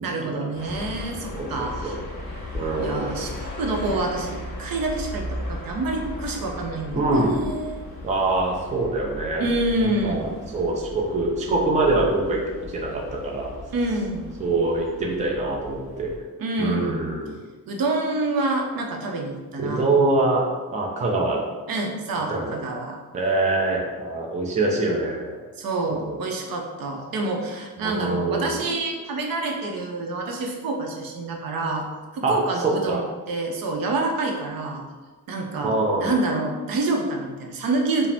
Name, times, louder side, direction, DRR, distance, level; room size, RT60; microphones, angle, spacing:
voice 1, 0.0-2.0 2.8-7.8 9.4-10.3 13.7-14.3 16.4-17.0 17.7-19.9 21.7-23.0 25.6-31.9 32.1-34.8 35.3-38.1, right 2 dB, 70° right, 1 dB, 0.6 m, -27 dB
sound 1, 0.5-16.2, left 1 dB, 30° left, 0.9 m, -37 dB
voice 2, 1.3-1.9 2.5-3.3 6.9-7.3 8.0-9.5 10.0-13.5 14.4-16.1 16.6-17.4 19.6-20.4 20.7-21.5 22.3-22.6 23.1-25.4 26.0-26.2 27.8-28.6 32.2-32.4 32.6-33.0 35.6-36.1, right 2 dB, 20° right, -1 dB, 0.4 m, -24 dB
4.8 x 2.1 x 3.4 m, 1.3 s
wide cardioid pair, 165°, 36 cm